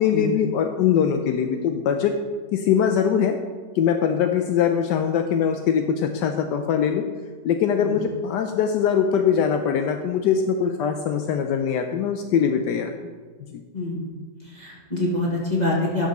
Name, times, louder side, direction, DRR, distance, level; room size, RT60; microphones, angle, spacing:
voice 1, 0.0-2.1 2.5-3.4 3.7-7.0 7.4-12.9 13.5-13.6, left 8 dB, 75° left, 5 dB, 1.2 m, -22 dB
voice 2, 13.7-14.1 14.5-16.1, left 2 dB, 25° left, -5 dB, 1.7 m, -25 dB
11.5 x 6.2 x 4.2 m, 1.5 s
omnidirectional pair, 1.9 m